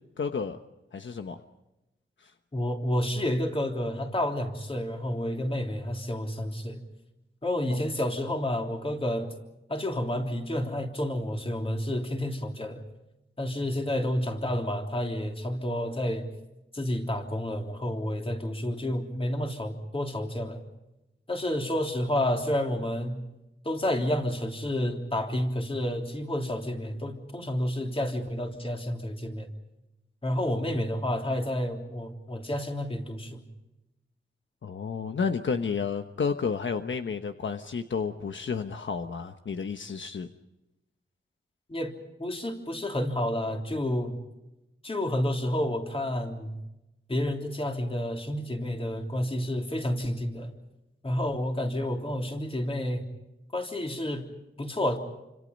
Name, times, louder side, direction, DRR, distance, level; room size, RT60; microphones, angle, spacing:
voice 1, 0.2-0.6 0.9-1.4 2.2-2.3 7.7-7.8 34.6-40.3, left 5 dB, 65° left, 7 dB, 1.1 m, -31 dB
voice 2, 2.5-6.8 7.4-9.3 9.7-12.8 13.4-16.3 16.7-20.6 21.3-23.2 23.6-29.5 30.2-33.4 41.7-41.9 42.2-44.2 44.8-46.6 47.1-50.5 51.0-53.1 53.5-54.3 54.6-55.0, left 1 dB, 25° left, 3 dB, 3.3 m, -30 dB
29.0 x 26.0 x 5.3 m, 0.97 s
wide cardioid pair, 140°, 21 cm